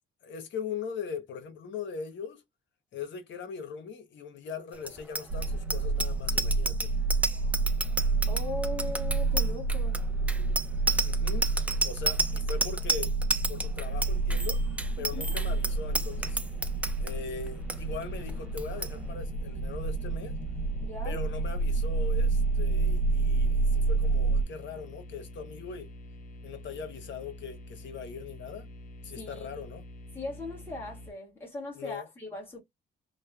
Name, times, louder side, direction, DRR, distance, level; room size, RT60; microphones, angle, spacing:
voice 1, 0.2-2.4 2.9-6.9 11.0-11.5 11.8-13.1 13.5-14.6 15.0-16.4 17.0-20.3 21.0-25.9 26.4-28.7 29.0-29.9 31.8-32.1, left 6 dB, 65° left, 1.0 m, -40 dB
Bicycle bell, 4.8-17.1 17.5-17.8 18.0-18.3 18.6-18.9, right 2 dB, 5° right, 0.4 m, -31 dB
sound 1, 5.3-24.4, right 3 dB, 70° right, 0.5 m, -29 dB
voice 2, 8.3-10.0 15.0-15.2 20.8-21.2 29.2-29.6 30.1-32.6, left 2 dB, 10° left, 1.4 m, -39 dB
sound 2, 13.8-31.1, left 1 dB, 45° left, 0.7 m, -47 dB
3.1 x 2.2 x 2.2 m
cardioid pair, 90°, 20 cm